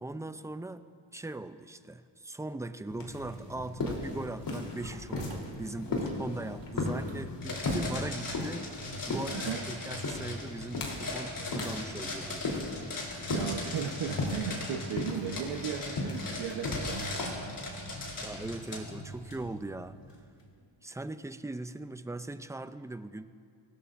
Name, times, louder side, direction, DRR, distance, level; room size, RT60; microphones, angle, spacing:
voice 1, 0.0-8.8 9.1-9.4 9.7-12.5 18.2-20.2 20.8-23.3, right 2 dB, 5° right, 11 dB, 0.4 m, -40 dB
sound 1, 2.9-20.4, left 2 dB, 65° left, 3.6 m, -37 dB
sound 2, 4.7-11.5 11.8-12.0, right 4 dB, 65° right, 1.8 m, -53 dB
sound 3, 7.4-18.8, left 2 dB, 45° left, 4.7 m, -39 dB
voice 2, 13.3-17.6, right 8 dB, 85° right, 2 dB, 1.1 m, -36 dB
25.0 x 18.0 x 2.6 m, 2.3 s
cardioid pair, 115°, 47 cm